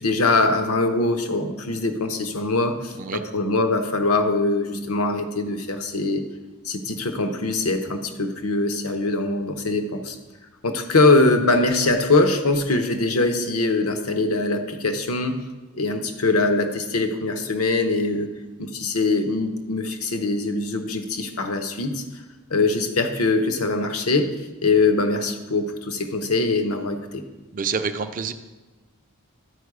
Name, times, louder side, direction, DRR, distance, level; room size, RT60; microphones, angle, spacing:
voice 1, 0.0-6.2 6.6-10.2 10.6-15.4 15.7-18.3 18.6-22.0 22.5-24.3 24.6-27.2, left 3 dB, 80° left, 6 dB, 0.8 m, -22 dB
voice 2, 27.5-28.3, right 5 dB, 40° right, 9 dB, 0.5 m, -27 dB
12.0 x 4.7 x 4.8 m, 1.2 s
head